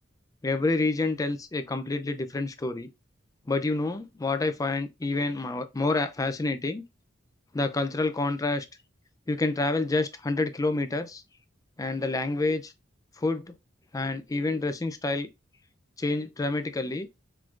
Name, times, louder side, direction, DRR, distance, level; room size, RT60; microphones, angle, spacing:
voice 1, 0.4-2.9 3.5-6.8 7.5-8.7 9.3-11.2 11.8-12.7 13.2-13.4 13.9-15.3 16.0-17.1, left 2 dB, 20° left, 0.4 m, -28 dB
4.5 x 4.1 x 2.4 m
head